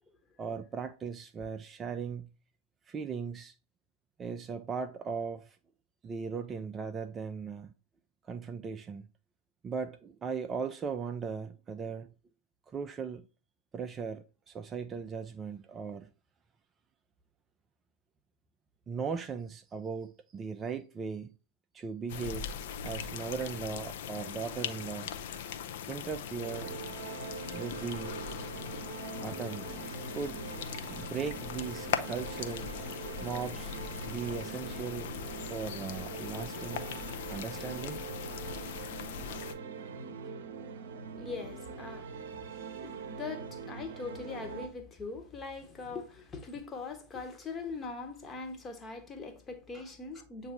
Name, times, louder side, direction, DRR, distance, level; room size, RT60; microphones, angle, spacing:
voice 1, 0.4-2.3 2.9-3.6 4.2-5.6 6.0-7.7 8.2-9.1 9.6-12.1 12.7-13.3 13.7-16.1 18.9-21.4 21.7-22.5 22.8-25.1 25.9-26.7 27.5-28.2 29.2-29.8 30.1-30.4 30.9-32.7 33.2-33.8 34.0-35.1 35.4-36.9 37.3-38.0 39.3-39.5 49.7-49.9, right 5 dB, 20° right, 0.4 m, -38 dB
sound 1, 22.1-39.5, left 8 dB, 55° left, 0.6 m, -40 dB
sound 2, 26.4-44.7, right 5 dB, 55° right, 0.8 m, -43 dB
voice 2, 41.1-42.2 42.5-50.5, left 4 dB, 20° left, 1.1 m, -41 dB
7.9 x 2.7 x 4.6 m
figure-of-eight pair, 90°, 0 cm